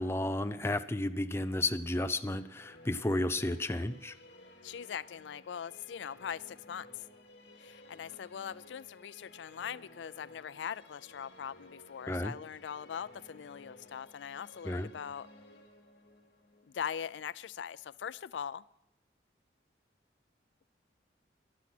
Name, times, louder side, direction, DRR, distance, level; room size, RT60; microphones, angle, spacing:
voice 1, 0.0-4.1 12.1-12.3 14.6-14.9, left 1 dB, 15° left, 9 dB, 0.5 m, -32 dB
sound 1, 2.1-18.2, left 2 dB, 60° left, 2.6 m, -57 dB
voice 2, 4.6-7.0 7.6-15.3 16.7-18.6, left 8 dB, 90° left, 18 dB, 0.4 m, -41 dB
14.5 x 11.0 x 6.0 m, 0.84 s
head